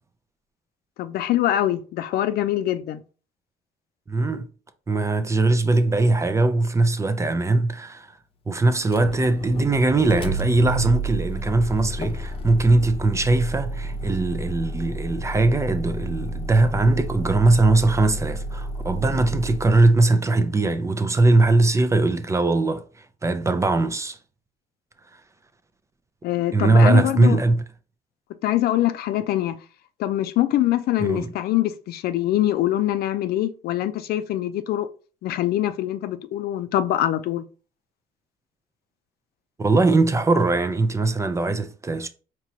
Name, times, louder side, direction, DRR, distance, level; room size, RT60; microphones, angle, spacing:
voice 1, 1.0-3.0 26.2-27.4 28.4-29.6 30.0-34.9 35.2-37.4, left 13 dB, 65° left, 0.4 m, -24 dB
voice 2, 4.1-4.5 4.9-8.2 8.5-22.8 23.2-24.2 26.5-27.6 31.0-31.3 39.6-42.1, right 2 dB, 15° right, 0.4 m, -20 dB
Motor vehicle (road), 8.8-20.0, right 1 dB, 35° left, 0.7 m, -31 dB
4.5 x 2.9 x 2.7 m
cardioid pair, 110°, 17 cm